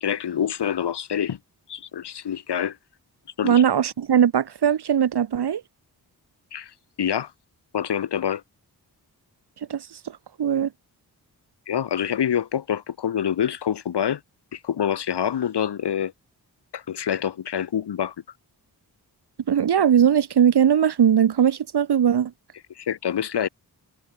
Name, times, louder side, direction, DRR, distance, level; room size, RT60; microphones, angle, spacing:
voice 1, 0.0-1.4 1.7-2.8 3.4-3.6 6.5-6.7 7.0-7.3 7.7-8.4 11.7-14.2 14.5-16.1 16.7-18.1 22.8-23.5, left 9 dB, 85° left, 2.1 m, -26 dB
voice 2, 3.4-5.6 9.7-9.9 10.4-10.7 19.5-22.3, right 8 dB, 75° right, 1.9 m, -19 dB
cardioid pair, 80°, 39 cm